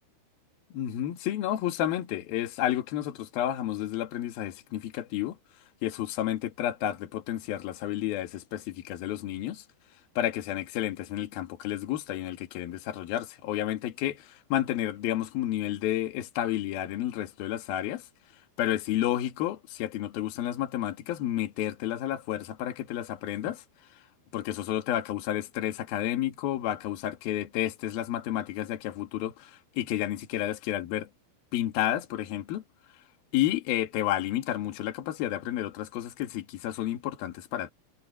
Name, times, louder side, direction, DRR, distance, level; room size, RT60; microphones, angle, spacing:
voice 1, 0.7-5.4 5.8-9.6 10.2-18.0 18.6-23.6 24.3-31.1 31.5-32.6 33.3-37.7, left 12 dB, 60° left, 3.2 m, -31 dB
omnidirectional pair, 5.7 m